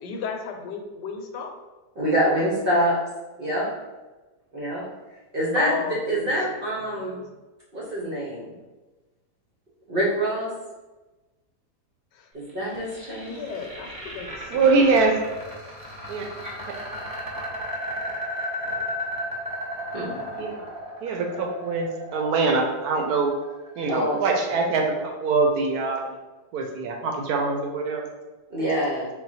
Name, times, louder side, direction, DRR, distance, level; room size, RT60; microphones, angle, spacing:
voice 1, 0.0-1.5 2.3-2.8 3.4-3.5 5.5-7.2 12.1-12.3 13.3-15.0 20.0-20.5, left 6 dB, 85° left, 3 dB, 1.3 m, -36 dB
voice 2, 2.0-3.0 3.4-3.7 4.5-4.9 5.3-5.8 6.1-7.2 7.7-8.5 9.9-10.5 12.3-13.4 19.9-20.1 23.9-24.2 24.5-24.6 28.5-29.1, equal, 50° right, -5 dB, 0.7 m, -25 dB
sound 1, 12.5-24.5, left 1 dB, 5° right, 0.8 m, -34 dB
voice 3, 14.5-15.1 16.1-16.2 20.4-20.6 21.0-23.3 23.8-26.2 26.5-28.1, right 4 dB, 75° right, 2 dB, 1.0 m, -23 dB
4.0 x 2.2 x 4.0 m, 1.2 s
omnidirectional pair, 1.8 m